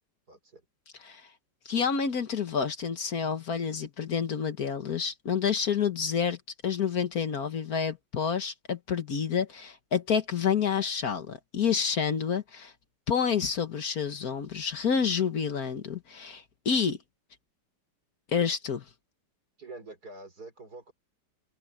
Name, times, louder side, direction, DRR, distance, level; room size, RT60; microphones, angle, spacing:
voice 1, 0.3-0.6 19.6-20.9, right 2 dB, 60° right, 5.5 m, -46 dB
voice 2, 1.6-6.4 6.6-12.7 13.1-17.0 18.3-18.8, left 6 dB, 55° left, 1.7 m, -29 dB
omnidirectional pair, 1.9 m